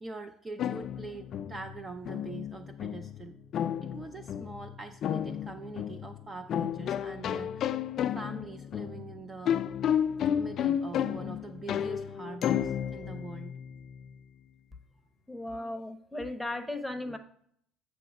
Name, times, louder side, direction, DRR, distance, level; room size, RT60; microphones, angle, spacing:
voice 1, 0.0-3.3 3.8-7.6 8.1-9.5 10.3-13.5, right 3 dB, 20° right, 7 dB, 0.5 m, -43 dB
sound 1, 0.6-14.2, left 9 dB, 50° left, 0.3 m, -32 dB
voice 2, 15.3-17.2, left 1 dB, ahead, 6 dB, 0.8 m, -36 dB
8.4 x 3.0 x 5.9 m, 0.67 s
cardioid pair, 120°, 0 cm